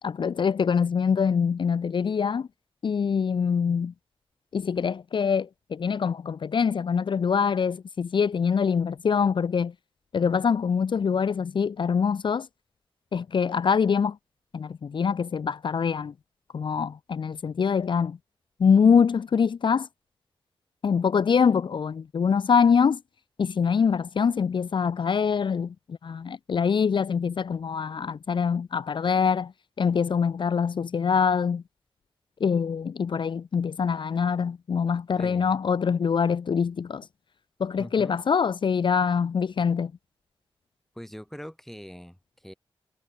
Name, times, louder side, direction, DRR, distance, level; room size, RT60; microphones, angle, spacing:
voice 1, 0.0-2.5 2.8-3.9 4.5-9.7 10.1-12.5 13.1-14.2 14.5-16.1 16.5-18.2 18.6-19.9 20.8-23.0 23.4-29.5 29.8-31.6 32.4-37.1 37.6-39.9, left 6 dB, 60° left, 0.7 m, -24 dB
voice 2, 35.2-35.5 37.8-38.2 40.9-42.5, equal, 5° left, 3.7 m, -42 dB
wide cardioid pair, 90°, 9 cm